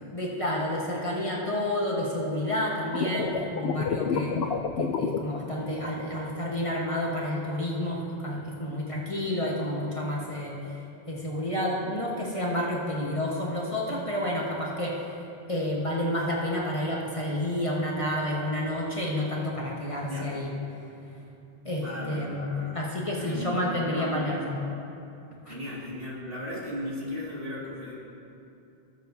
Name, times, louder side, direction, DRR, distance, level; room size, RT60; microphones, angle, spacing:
voice 1, 0.1-4.4 4.8-10.8 11.1-15.0 15.5-20.5 21.6-22.4 22.7-24.5 25.4-25.5, left 1 dB, 30° left, -4 dB, 1.3 m, -30 dB
sound 1, 2.9-5.2, left 6 dB, 70° left, 0.8 m, -28 dB
voice 2, 20.0-20.3 21.7-22.8 23.2-24.4 25.5-27.9, left 1 dB, 60° right, -7 dB, 2.5 m, -36 dB
18.5 x 7.5 x 2.7 m, 2.8 s
omnidirectional pair, 1.1 m